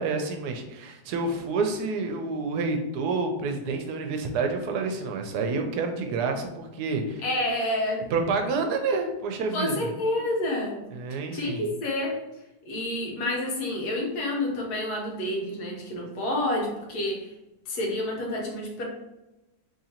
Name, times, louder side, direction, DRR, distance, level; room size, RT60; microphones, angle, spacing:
voice 1, 0.0-7.2 8.1-9.9 10.9-11.7, right 4 dB, 75° right, 4 dB, 1.1 m, -28 dB
voice 2, 7.2-8.0 9.5-10.9 11.3-17.3 17.7-18.8, left 1 dB, 70° left, 0 dB, 1.4 m, -29 dB
3.7 x 3.1 x 2.8 m, 0.99 s
omnidirectional pair, 1.8 m